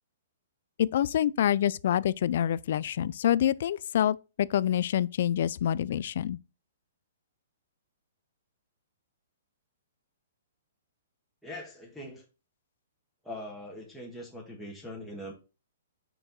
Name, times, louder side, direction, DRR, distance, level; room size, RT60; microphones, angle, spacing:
voice 1, 0.8-6.4, left 10 dB, 60° left, 0.3 m, -26 dB
voice 2, 11.4-12.2 13.2-15.3, left 1 dB, ahead, 1.7 m, -42 dB
6.4 x 4.6 x 3.9 m
hypercardioid pair, 130°, 0 cm